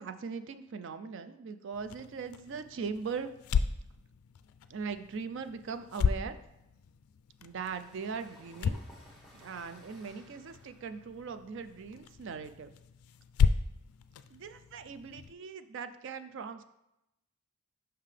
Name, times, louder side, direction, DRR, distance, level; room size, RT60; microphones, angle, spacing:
voice 1, 0.0-3.3 4.7-6.4 7.4-8.8 9.3-12.7 14.3-16.6, right 5 dB, 55° right, 10 dB, 0.4 m, -40 dB
sound 1, 1.7-15.3, left 6 dB, 80° left, 0.3 m, -35 dB
sound 2, 7.4-12.9, equal, ahead, 1.1 m, -59 dB
5.6 x 5.6 x 3.3 m, 0.88 s
head